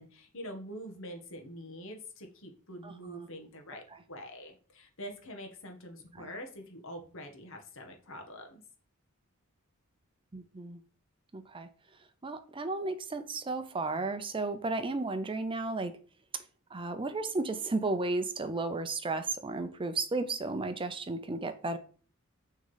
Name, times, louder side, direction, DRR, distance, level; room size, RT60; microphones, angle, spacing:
voice 1, 0.0-8.6, equal, 65° left, 1.7 m, -45 dB
voice 2, 2.8-3.3 6.2-6.3 10.3-10.8 11.3-11.7 12.2-15.9 16.7-21.8, right 3 dB, 25° right, 0.6 m, -34 dB
6.4 x 3.8 x 5.6 m
head